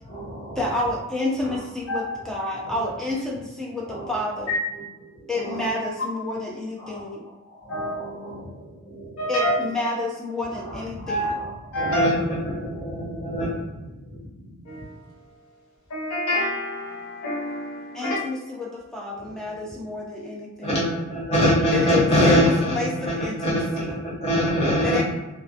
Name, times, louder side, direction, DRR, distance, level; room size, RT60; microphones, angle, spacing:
voice 1, 0.0-0.7 1.4-1.6 2.6-2.8 3.9-4.5 5.1-5.7 6.8-9.3 10.5-14.8 19.2-19.3 19.6-19.9 20.6-25.0, equal, 30° left, -8 dB, 1.0 m, -26 dB
voice 2, 0.6-4.5 5.3-7.2 9.3-11.3 17.9-20.7 21.7-23.9 24.8-25.0, left 2 dB, ahead, -4 dB, 0.4 m, -29 dB
voice 3, 9.2-9.5 11.1-11.3 11.7-12.1 14.6-15.4 15.9-18.2, equal, 80° left, -2 dB, 0.7 m, -27 dB
2.4 x 2.2 x 2.4 m, 1.1 s
head